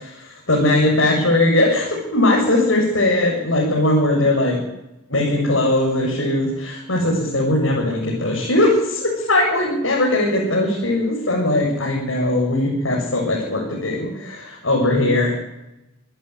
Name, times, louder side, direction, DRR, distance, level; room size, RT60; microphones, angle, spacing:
voice 1, 0.5-4.6 5.1-15.3, left 1 dB, 85° left, -2 dB, 7.4 m, -19 dB
27.0 x 14.5 x 9.9 m, 0.93 s
head